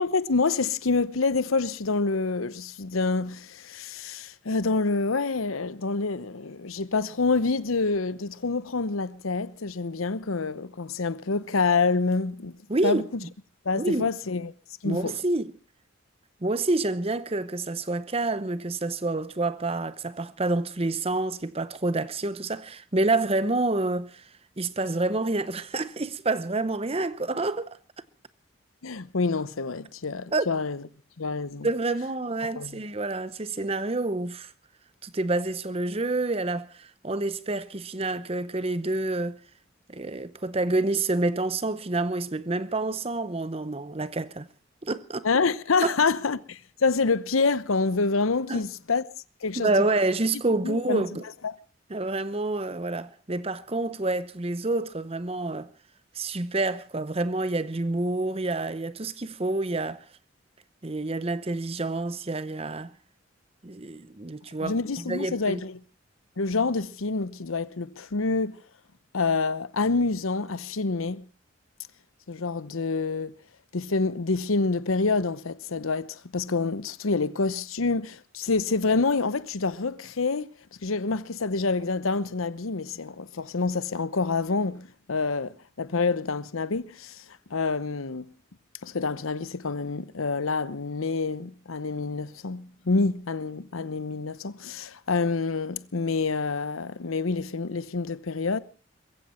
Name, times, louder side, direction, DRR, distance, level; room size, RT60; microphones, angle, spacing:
voice 1, 0.0-12.6 12.8-13.0 13.6-14.5 14.8-15.2 28.8-30.8 31.2-31.7 32.6-32.8 45.2-49.0 49.4-49.8 50.6-51.0 51.4-51.5 64.6-65.8 66.4-68.6 69.1-71.2 72.3-73.3 73.7-80.5 80.8-87.2 87.5-88.3 88.8-98.6, left 4 dB, 85° left, 0.9 m, -27 dB
voice 2, 12.7-13.3 13.7-14.1 14.8-15.5 16.4-24.3 24.6-27.8 30.3-30.5 31.6-34.5 35.0-39.4 39.9-44.5 44.8-45.3 45.8-45.9 48.5-48.6 49.5-51.2 51.9-55.7 56.1-60.0 60.8-62.9 63.6-65.6, right 2 dB, 30° right, 0.8 m, -28 dB
21.5 x 15.5 x 4.3 m
head